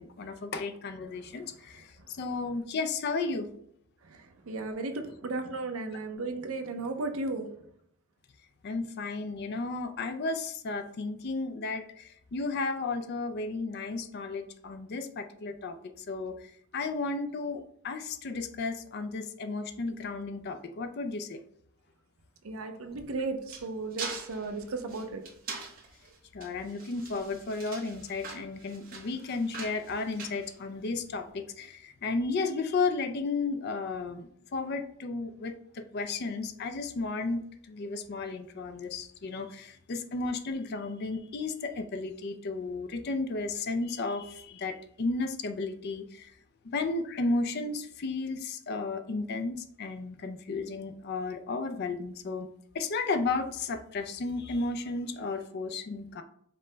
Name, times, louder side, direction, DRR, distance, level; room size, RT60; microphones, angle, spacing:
voice 1, 0.0-1.8 2.2-3.5 8.6-16.4 16.7-21.4 26.3-46.3 46.6-52.5 52.7-56.2, left 3 dB, 50° left, 8 dB, 0.4 m, -33 dB
voice 2, 4.1-7.5 22.4-25.2, right 3 dB, 75° right, 6 dB, 0.6 m, -35 dB
sound 1, 22.9-31.1, right 4 dB, 40° right, 0.8 m, -43 dB
5.3 x 2.1 x 3.8 m, 0.70 s
head